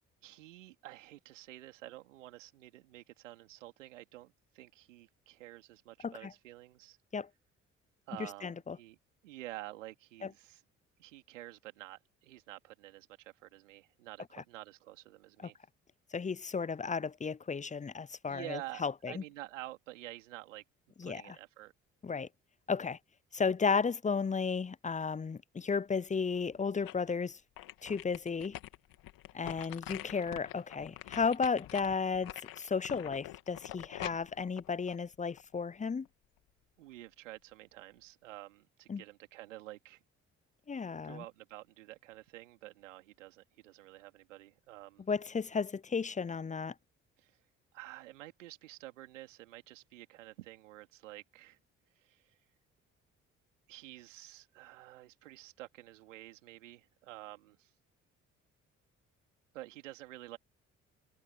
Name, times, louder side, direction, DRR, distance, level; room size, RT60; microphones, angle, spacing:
voice 1, 0.2-7.0 8.1-9.0 9.2-10.6 11.0-15.6 18.3-20.6 21.0-21.7 36.8-40.0 41.0-45.0 47.2-47.4 47.7-51.6 52.0-52.4 53.7-57.7 59.5-60.4, right 16 dB, 85° right, 3.0 m, -49 dB
voice 2, 8.4-8.8 10.2-10.3 16.1-19.2 21.0-21.4 22.0-22.3 22.7-23.0 23.3-27.4 27.8-28.6 29.3-36.1 38.9-39.0 40.7-41.2 45.1-46.7, left 5 dB, 20° left, 0.7 m, -34 dB
sound 1, 26.3-27.1 27.6-35.6 36.0-36.1, left 15 dB, 65° left, 2.8 m, -46 dB
hypercardioid pair, 45°, 37 cm